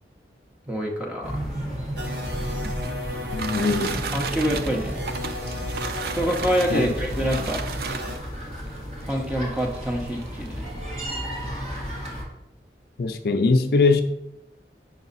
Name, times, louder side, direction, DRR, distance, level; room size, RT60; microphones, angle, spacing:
voice 1, 0.7-1.5 3.6-3.7 4.1-5.0 6.2-7.6 9.1-10.7, equal, 5° right, 0 dB, 0.7 m, -26 dB
sound 1, 1.2-12.2, equal, 40° right, 1.3 m, -33 dB
sound 2, 2.0-8.2, left 1 dB, 70° right, 0.9 m, -34 dB
sound 3, 2.2-8.4 9.2-9.3 9.7-9.8 10.2-10.5, right 5 dB, 55° right, 0.4 m, -34 dB
voice 2, 3.3-4.0 6.7-6.8 13.0-14.0, left 3 dB, 55° left, 7 dB, 0.4 m, -21 dB
5.2 x 4.7 x 4.0 m, 0.87 s
head